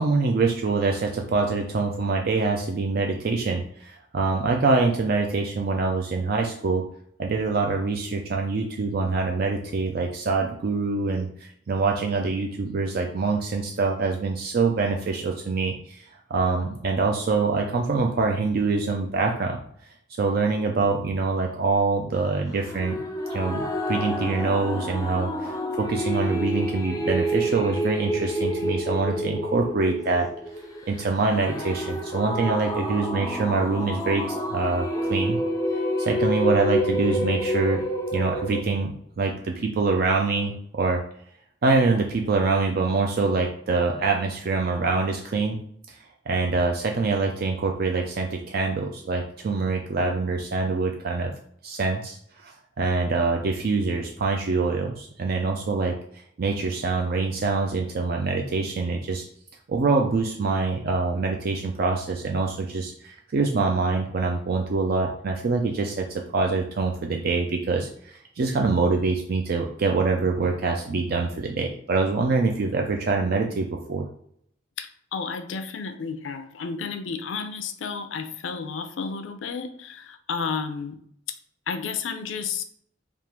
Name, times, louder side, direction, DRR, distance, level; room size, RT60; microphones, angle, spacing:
voice 1, 0.0-6.9 7.2-16.0 16.3-19.6 20.2-23.0 23.3-30.3 30.9-35.4 36.0-37.8 38.1-41.0 41.6-45.6 45.9-51.3 51.6-55.9 56.4-59.2 59.7-74.1, right 3 dB, 55° right, 2 dB, 0.4 m, -25 dB
sound 1, 22.6-38.6, equal, 20° left, 0.4 m, -28 dB
voice 2, 74.8-81.0 81.7-82.6, left 5 dB, 90° left, 9 dB, 0.5 m, -32 dB
3.6 x 2.4 x 4.4 m, 0.66 s
head